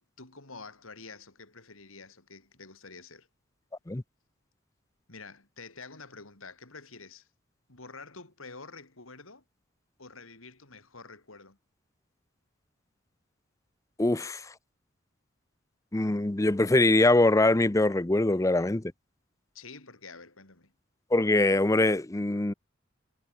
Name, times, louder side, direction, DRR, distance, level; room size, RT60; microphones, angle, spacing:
voice 1, 0.0-3.3 5.1-7.3 7.7-9.4 10.0-11.6 19.5-20.7, left 4 dB, 80° left, 4.3 m, -48 dB
voice 2, 14.0-14.5 15.9-18.8 21.1-22.5, left 2 dB, 15° left, 0.5 m, -23 dB
head